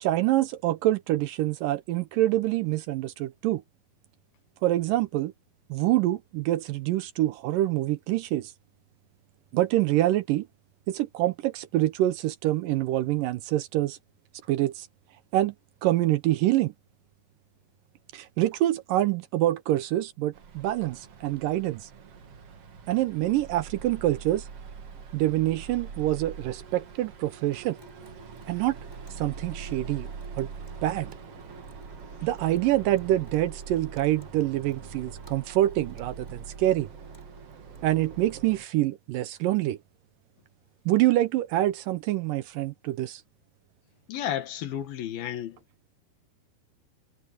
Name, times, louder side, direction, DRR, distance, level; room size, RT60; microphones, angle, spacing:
voice 1, 0.0-3.6 4.6-5.3 5.7-8.5 9.5-10.5 10.9-14.0 14.5-14.9 15.3-15.5 15.8-16.7 18.1-21.9 22.9-24.5 25.1-27.8 28.5-28.8 29.2-30.1 30.4-30.5 30.8-31.1 32.2-36.9 37.8-39.8 40.9-43.2, right 15 dB, 75° right, 2.2 m, -26 dB
sound 1, 20.3-38.7, right 6 dB, 45° right, 2.5 m, -43 dB
Water tap faucet / Sink (filling or washing) / Drip, 27.5-38.3, right 1 dB, 5° right, 7.4 m, -53 dB
voice 2, 44.1-45.6, left 11 dB, 75° left, 3.4 m, -32 dB
omnidirectional pair, 4.3 m